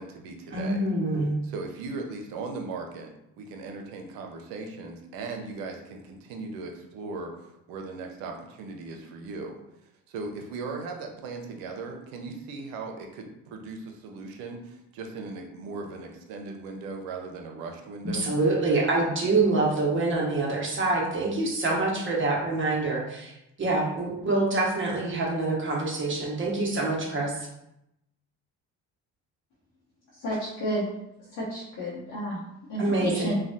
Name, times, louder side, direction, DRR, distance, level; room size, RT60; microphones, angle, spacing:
voice 1, 0.0-0.8 1.4-7.3 7.7-9.6 10.1-18.3, right 3 dB, 85° right, 3 dB, 0.6 m, -38 dB
voice 2, 0.5-1.4 18.1-23.3 23.6-27.3 32.8-33.4, right 2 dB, 35° right, -2 dB, 0.9 m, -26 dB
voice 3, 30.1-30.9 31.3-32.4 32.7-33.4, equal, 60° left, -7 dB, 0.9 m, -30 dB
3.2 x 2.1 x 2.6 m, 0.85 s
supercardioid pair, 80°, 34 cm